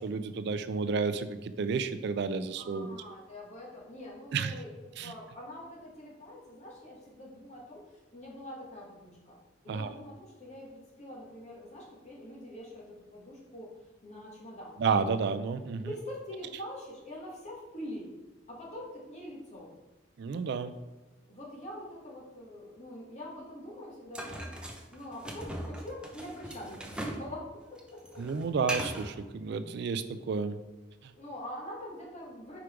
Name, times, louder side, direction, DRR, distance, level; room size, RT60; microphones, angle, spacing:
voice 1, 0.0-3.0 4.3-4.6 5.0-5.1 9.7-9.9 14.8-15.9 20.2-20.7 28.2-30.6 31.0-31.1, right 5 dB, 60° right, 12 dB, 0.3 m, -31 dB
voice 2, 2.6-9.4 9.6-13.7 14.0-14.8 15.8-18.1 18.5-19.8 21.3-24.5 24.9-28.2 31.2-32.6, left 1 dB, 35° left, -3 dB, 1.7 m, -44 dB
sound 1, 24.1-27.3 27.6-29.1, right 1 dB, 5° right, 0.6 m, -39 dB
5.2 x 4.9 x 4.5 m, 1.1 s
head